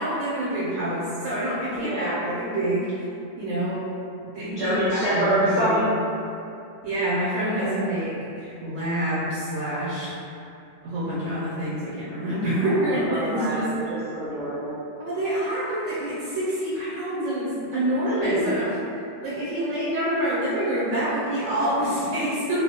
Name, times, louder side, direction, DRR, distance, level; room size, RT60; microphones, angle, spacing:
voice 1, 0.0-2.9 3.4-3.8 4.3-5.8 6.8-10.1 10.8-13.7 15.0-18.7 19.2-22.6, right 1 dB, 85° right, -9 dB, 0.9 m, -27 dB
voice 2, 1.7-2.2 4.3-6.0 7.5-7.9 12.6-14.7 18.2-18.5, right 1 dB, 55° right, -12 dB, 0.6 m, -26 dB
2.3 x 2.1 x 2.7 m, 2.6 s
omnidirectional pair, 1.3 m